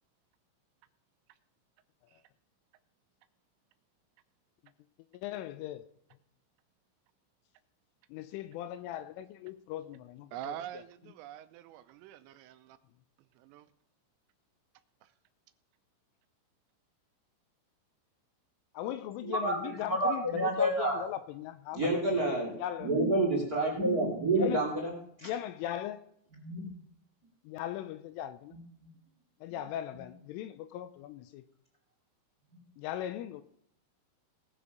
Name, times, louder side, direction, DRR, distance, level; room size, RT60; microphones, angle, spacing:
voice 1, 5.1-5.8 8.1-10.8 18.7-22.3 22.6-23.0 24.4-24.7 25.2-26.0 27.4-28.5 29.4-31.4 32.8-33.4, left 12 dB, 85° left, 3.1 m, -39 dB
voice 2, 10.3-12.8 13.4-13.7, right 12 dB, 85° right, 3.2 m, -44 dB
voice 3, 19.2-21.0 21.7-22.5 22.8-24.9 25.2-25.3 26.4-26.8, right 1 dB, 40° right, 1.3 m, -29 dB
19.5 x 7.0 x 5.2 m
omnidirectional pair, 6.0 m